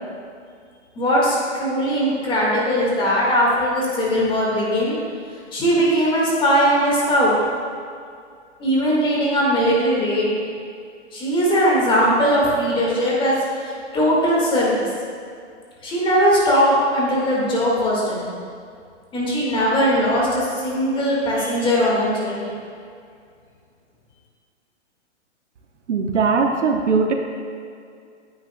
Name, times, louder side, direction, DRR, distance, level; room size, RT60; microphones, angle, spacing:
voice 1, 1.0-5.0 5.5-7.3 8.6-10.4 11.1-14.9 15.8-18.4 19.1-22.5, equal, 15° left, -5 dB, 1.8 m, -19 dB
voice 2, 25.9-27.1, right 5 dB, 75° right, 3 dB, 1.0 m, -19 dB
9.2 x 9.1 x 2.2 m, 2.3 s
hypercardioid pair, 135°, 36 cm